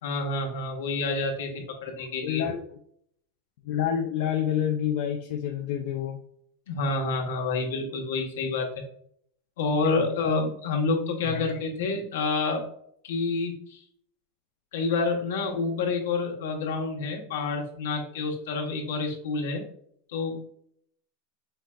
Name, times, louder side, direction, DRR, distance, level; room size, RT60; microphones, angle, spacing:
voice 1, 0.0-2.5 6.7-8.8 9.6-12.7 13.0-13.8 14.7-19.6 20.1-20.4, left 3 dB, 85° left, 1 dB, 1.2 m, -28 dB
voice 2, 2.2-2.6 3.6-6.2 9.8-10.0 11.3-11.5, left 9 dB, 70° left, 2 dB, 0.6 m, -28 dB
5.6 x 3.3 x 2.4 m, 0.67 s
supercardioid pair, 130°, 0 cm